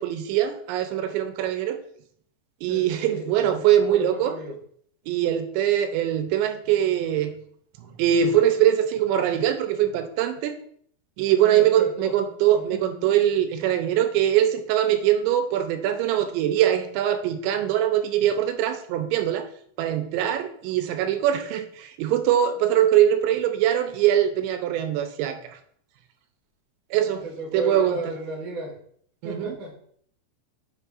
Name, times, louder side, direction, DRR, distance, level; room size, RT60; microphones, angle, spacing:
voice 1, 0.0-1.8 2.6-4.3 5.1-7.3 7.8-10.6 11.2-19.5 19.8-25.6 26.9-27.2 27.5-28.0 29.2-29.6, right 10 dB, 85° right, 8 dB, 3.0 m, -22 dB
voice 2, 2.7-4.6 11.4-12.1 12.5-12.8 27.1-28.8 29.2-29.7, right 2 dB, 60° right, -2 dB, 0.8 m, -34 dB
8.1 x 6.1 x 2.5 m, 0.62 s
omnidirectional pair, 5.0 m